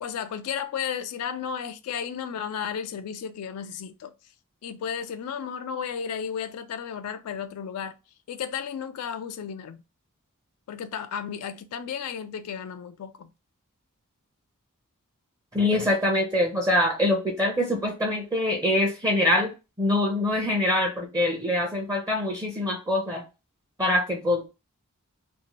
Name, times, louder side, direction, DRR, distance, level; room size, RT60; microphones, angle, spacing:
voice 1, 0.0-4.1 4.6-8.0 8.3-9.8 10.7-13.3, left 7 dB, 80° left, 0.3 m, -33 dB
voice 2, 15.5-19.5 19.8-23.2 23.8-24.5, left 1 dB, 15° right, 0.6 m, -24 dB
2.6 x 2.5 x 2.9 m
head